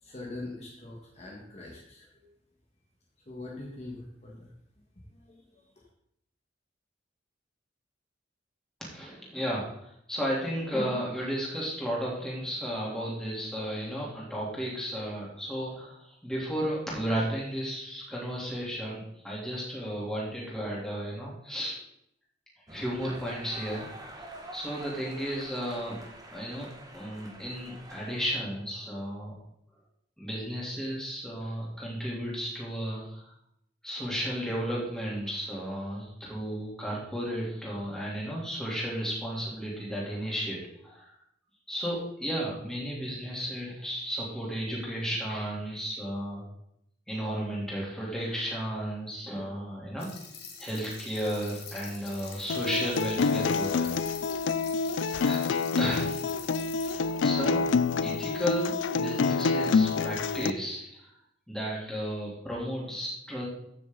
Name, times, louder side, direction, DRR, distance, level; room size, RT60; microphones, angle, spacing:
voice 1, 0.0-2.3 3.3-4.5 5.1-5.8, left 2 dB, 35° left, -2 dB, 1.8 m, -43 dB
voice 2, 8.8-21.8 22.7-23.9 24.2-24.3 24.5-26.0 26.3-29.3 30.2-33.3 33.8-41.1 41.7-46.4 47.1-50.1 50.6-54.0 55.1-55.4 55.8-56.3 56.9-57.6 58.0-61.1 61.5-63.5, equal, 5° left, -5 dB, 3.4 m, -34 dB
sound 1, 22.7-28.3, right 1 dB, 20° right, 1.4 m, -46 dB
sound 2, 50.0-56.9, left 6 dB, 55° left, 2.2 m, -46 dB
Acoustic guitar, 52.5-60.5, left 4 dB, 80° left, 0.4 m, -27 dB
15.0 x 7.0 x 4.0 m, 0.75 s
head